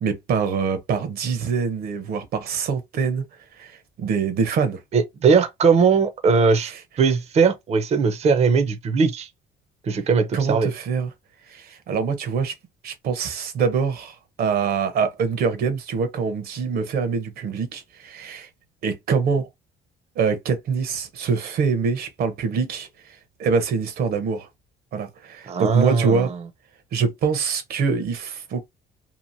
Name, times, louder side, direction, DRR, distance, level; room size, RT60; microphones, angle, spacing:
voice 1, 0.0-3.2 3.6-4.8 6.7-6.8 10.3-11.1 11.5-12.5 12.8-18.5 18.8-19.5 20.2-24.5 24.9-26.3 26.9-28.7, right 5 dB, 65° right, 0.9 m, -24 dB
voice 2, 4.9-6.7 7.0-9.3 9.8-10.7 25.5-26.3, right 5 dB, 40° right, 0.6 m, -19 dB
2.9 x 2.5 x 2.6 m
cardioid pair, 110°, 17 cm